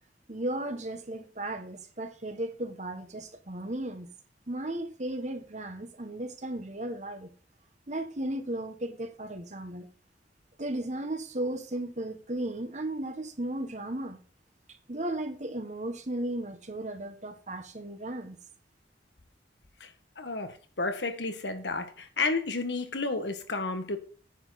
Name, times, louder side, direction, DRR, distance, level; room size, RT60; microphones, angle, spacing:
voice 1, 0.3-4.1 4.5-7.3 7.9-9.9 10.6-14.2 14.9-18.4, right 1 dB, 40° right, 1.4 m, -35 dB
voice 2, 20.2-24.0, left 3 dB, 75° left, 1.7 m, -31 dB
9.9 x 7.3 x 4.2 m
head